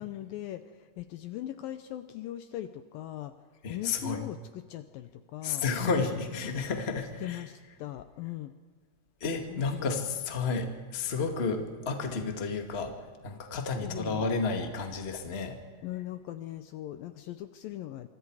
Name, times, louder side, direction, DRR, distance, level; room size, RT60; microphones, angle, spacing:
voice 1, 0.0-3.3 3.7-6.1 7.2-8.5 9.5-10.0 13.5-14.3 15.8-18.1, left 13 dB, 75° left, 10 dB, 2.3 m, -40 dB
voice 2, 3.6-4.2 5.4-7.4 9.2-12.9 13.2-15.6, left 4 dB, 25° left, 4 dB, 1.5 m, -31 dB
26.5 x 25.0 x 4.9 m, 1.5 s
omnidirectional pair, 4.6 m